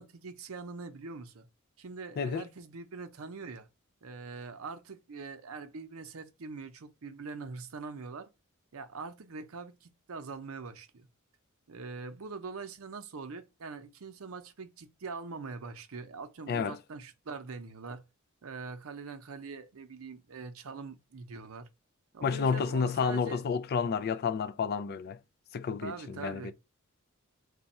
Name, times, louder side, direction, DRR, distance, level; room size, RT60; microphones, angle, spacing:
voice 1, 0.0-1.5 1.8-3.7 4.0-8.3 8.7-11.1 11.7-18.0 18.4-21.7 22.1-23.4 25.8-26.5, right 4 dB, 75° right, 0.6 m, -43 dB
voice 2, 22.2-25.2 25.5-26.5, left 5 dB, 50° left, 0.3 m, -30 dB
3.3 x 2.2 x 4.1 m
head